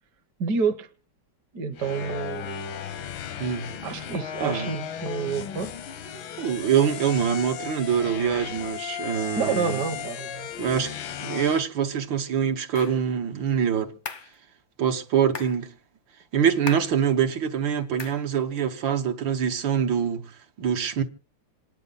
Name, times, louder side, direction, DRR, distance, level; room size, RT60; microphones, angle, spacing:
voice 1, 0.4-0.9 1.5-2.6 3.8-5.7 9.4-10.5, right 5 dB, 60° right, 1.5 m, -28 dB
sound 1, 1.8-11.7, left 9 dB, 85° left, 1.7 m, -35 dB
voice 2, 3.4-3.7 4.4-4.7 6.4-9.8 10.6-11.0 11.2-13.9 14.8-15.7 16.3-21.0, right 8 dB, 75° right, 1.9 m, -25 dB
sound 2, 12.7-13.0 14.1-14.3 15.3-15.6 16.7-17.0 18.0-18.2, left 5 dB, 45° left, 0.6 m, -37 dB
27.0 x 10.5 x 4.0 m
omnidirectional pair, 2.1 m